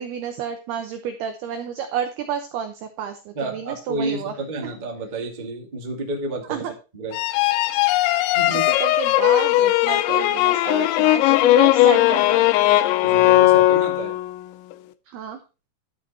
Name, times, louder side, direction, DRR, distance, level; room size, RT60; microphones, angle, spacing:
voice 1, 0.0-4.3 4.6-4.7 6.5-6.7 8.1-12.3 15.1-15.4, right 8 dB, 80° right, 6 dB, 2.3 m, -30 dB
voice 2, 3.3-6.7 6.9-7.2 8.3-8.7 13.0-14.2, right 2 dB, 30° right, -1 dB, 0.7 m, -30 dB
sound 1, 7.1-14.3, left 15 dB, 85° left, 2.7 m, -18 dB
12.5 x 6.1 x 4.3 m, 0.31 s
omnidirectional pair, 5.8 m